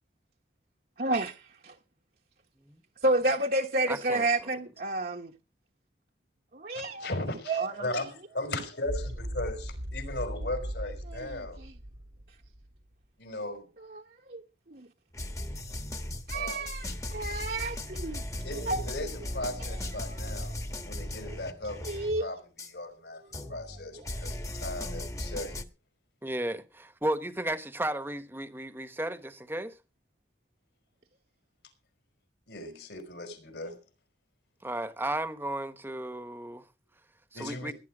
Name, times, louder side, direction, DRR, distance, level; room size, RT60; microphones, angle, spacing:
voice 1, 1.0-1.7 3.0-5.3 6.5-7.1 7.5-7.9 11.1-11.7 13.9-14.4 14.7-14.9 16.3-18.2 18.6-18.8 20.0-20.2 20.5-20.8 21.8-22.3 23.4-23.5 23.9-24.2, right 2 dB, 55° right, 1.2 m, -31 dB
voice 2, 3.9-4.3 26.2-29.7 34.6-36.6 37.3-37.7, right 1 dB, 10° right, 1.1 m, -34 dB
voice 3, 6.7-11.6 13.2-13.7 16.3-16.8 18.4-22.4 22.7-25.6 32.5-33.8 37.3-37.7, left 2 dB, 75° left, 5.0 m, -37 dB
sound 1, 8.9-12.8, equal, 75° right, 1.7 m, -38 dB
sound 2, 15.1-22.3 22.6-22.7 23.3-25.6, left 1 dB, 15° left, 1.2 m, -37 dB
17.5 x 11.0 x 4.9 m
head